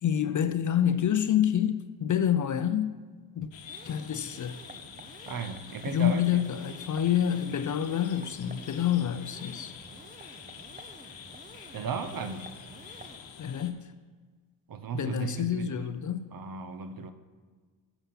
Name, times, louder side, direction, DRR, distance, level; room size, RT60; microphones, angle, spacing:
voice 1, 0.0-3.0 3.3-3.5 3.8-4.6 5.9-9.7 13.4-13.9 14.9-16.3, left 10 dB, 45° left, 0.5 m, -27 dB
sound 1, 3.5-13.7, left 7 dB, 75° left, 1.0 m, -47 dB
sound 2, 3.7-13.2, right 3 dB, 20° right, 0.6 m, -51 dB
voice 2, 5.3-6.4 11.7-12.6 14.7-15.7 16.3-17.1, right 6 dB, 50° right, 0.9 m, -35 dB
7.2 x 7.0 x 5.7 m
cardioid pair, 75°, 46 cm